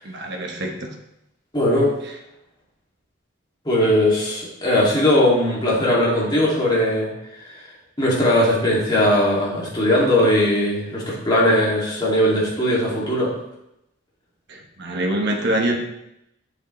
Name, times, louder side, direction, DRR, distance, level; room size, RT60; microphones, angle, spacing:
voice 1, 0.0-0.9 14.5-15.8, right 1 dB, 50° right, 2 dB, 1.1 m, -25 dB
voice 2, 1.5-1.9 3.6-7.1 7.5-7.6 8.0-13.3, left 1 dB, 20° left, -6 dB, 2.3 m, -19 dB
7.9 x 6.7 x 3.1 m, 0.84 s
head